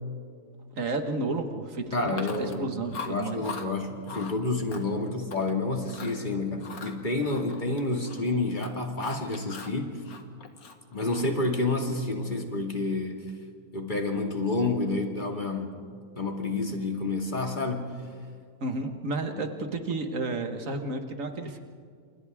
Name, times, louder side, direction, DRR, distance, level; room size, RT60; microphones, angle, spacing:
voice 1, 0.8-3.4 11.0-11.3 18.6-21.6, right 3 dB, 60° right, 5 dB, 2.0 m, -32 dB
voice 2, 1.9-10.0 10.9-13.3 13.7-15.8 16.2-17.9 19.4-19.5, left 2 dB, 30° left, 2 dB, 2.4 m, -29 dB
Chewing mastication, 2.1-2.6 2.9-3.7 4.1-4.4 4.7-5.5 5.9-6.2 6.6-8.2 8.5-9.8 10.1-11.4, left 5 dB, 70° left, 2.0 m, -41 dB
30.0 x 28.0 x 3.6 m, 2.2 s
omnidirectional pair, 1.6 m